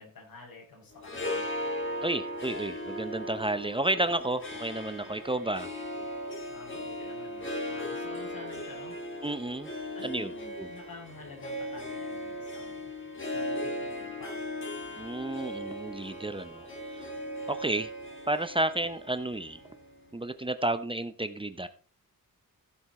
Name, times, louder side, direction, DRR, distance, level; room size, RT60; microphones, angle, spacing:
voice 1, 0.0-1.5 5.9-6.0 6.5-9.0 9.9-13.0 13.3-14.6 17.5-17.7, left 3 dB, 90° left, 0 dB, 6.7 m, -50 dB
Harp, 0.9-20.3, left 1 dB, 35° left, 4.6 m, -38 dB
voice 2, 2.0-5.7 9.2-9.7 10.0-10.7 15.0-16.7 16.9-17.1 17.5-17.9 18.3-19.6 20.1-21.7, right 1 dB, 15° right, 11 dB, 0.8 m, -31 dB
15.0 x 8.0 x 4.2 m, 0.38 s
wide cardioid pair, 120°, 34 cm